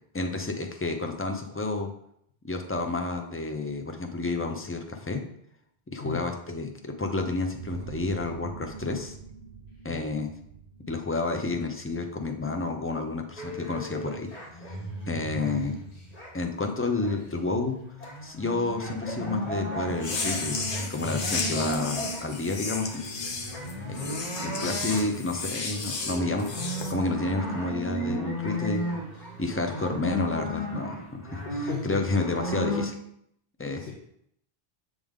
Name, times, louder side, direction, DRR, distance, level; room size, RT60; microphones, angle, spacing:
voice 1, 0.1-1.9 2.4-5.2 5.9-9.2 9.8-10.3 10.9-14.3 15.1-15.8 16.3-17.8 18.2-20.6 20.9-23.0 23.9-26.5 26.9-28.8 29.4-32.9 33.6-33.9, left 3 dB, 20° left, 4 dB, 0.4 m, -30 dB
sound 1, 7.5-13.0, right 5 dB, 75° right, 0.9 m, -45 dB
sound 2, 13.4-16.5 16.7-32.8, equal, 40° left, 1.2 m, -35 dB
sound 3, 19.9-26.9, left 4 dB, 60° left, 0.9 m, -33 dB
voice 2, 31.4-32.0 33.8-33.9, left 6 dB, 85° left, -3 dB, 1.1 m, -35 dB
7.6 x 3.5 x 3.6 m, 0.72 s
omnidirectional pair, 1.0 m